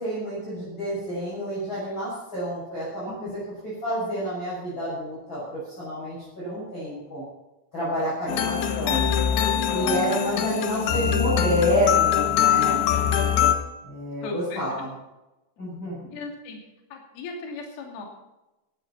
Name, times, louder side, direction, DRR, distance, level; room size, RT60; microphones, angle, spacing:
voice 1, 0.0-7.2 7.7-9.0 9.7-12.9 13.8-14.9 15.6-16.2, equal, 20° left, -9 dB, 7.6 m, -29 dB
voice 2, 3.1-3.4 9.7-10.3 14.2-14.6 16.1-16.6 16.9-18.0, left 3 dB, 55° left, 1 dB, 4.3 m, -37 dB
sound 1, 8.3-13.6, left 9 dB, 75° left, 3.3 m, -23 dB
16.5 x 14.0 x 4.3 m, 0.98 s
omnidirectional pair, 5.8 m